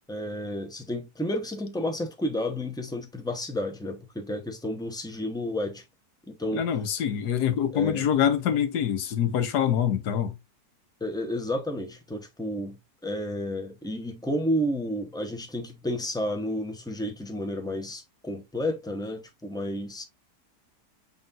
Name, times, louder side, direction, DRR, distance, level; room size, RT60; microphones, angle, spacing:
voice 1, 0.1-5.8 6.3-6.6 7.7-8.1 11.0-20.0, left 1 dB, 5° left, 0.3 m, -31 dB
voice 2, 6.5-10.4, left 9 dB, 75° left, 1.4 m, -25 dB
5.6 x 3.8 x 2.4 m
omnidirectional pair, 1.8 m